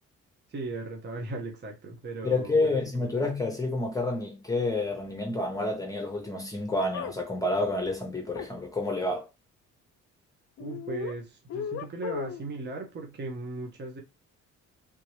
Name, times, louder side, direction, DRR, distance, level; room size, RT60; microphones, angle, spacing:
voice 1, 0.5-3.1 10.6-14.0, right 2 dB, 35° right, 0.9 m, -37 dB
voice 2, 2.2-9.3, left 2 dB, 10° left, 0.9 m, -29 dB
sound 1, 6.9-7.2 8.3-8.5 10.6-11.2 11.5-12.5, left 8 dB, 50° left, 0.4 m, -36 dB
3.4 x 2.9 x 3.0 m
cardioid pair, 90°, 30 cm